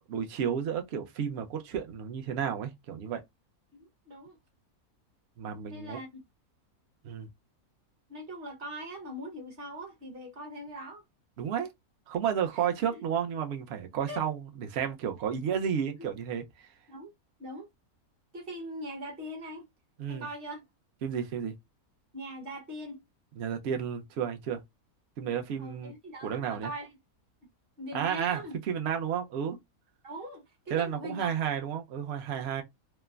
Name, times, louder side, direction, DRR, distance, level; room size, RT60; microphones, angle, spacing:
voice 1, 0.0-3.2 5.4-6.0 7.0-7.3 11.4-11.7 12.1-16.7 20.0-20.3 21.0-21.5 23.4-24.6 25.2-25.9 26.2-26.7 27.9-29.6 30.7-32.6, right 8 dB, 60° right, 0.7 m, -32 dB
voice 2, 3.7-4.4 5.7-6.2 8.1-11.0 12.5-13.0 14.1-14.2 16.9-17.1 17.4-17.7 18.3-19.7 20.1-20.6 22.1-23.0 25.6-27.0 27.8-28.6 30.0-31.3, equal, 45° right, 1.1 m, -41 dB
3.2 x 2.1 x 2.3 m
omnidirectional pair, 1.5 m